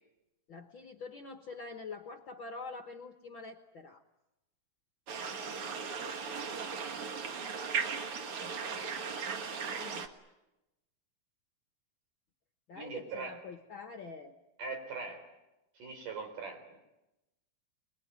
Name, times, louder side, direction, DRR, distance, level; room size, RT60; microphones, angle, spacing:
voice 1, 0.5-4.0 8.4-10.1 12.7-14.3, left 4 dB, 55° left, 6 dB, 1.4 m, -46 dB
sound 1, 5.1-10.1, right 5 dB, 50° right, 2.1 m, -37 dB
voice 2, 12.8-13.4 14.6-15.3 15.8-16.8, right 4 dB, 75° right, 5 dB, 5.6 m, -41 dB
29.5 x 21.5 x 9.4 m, 0.99 s
omnidirectional pair, 3.8 m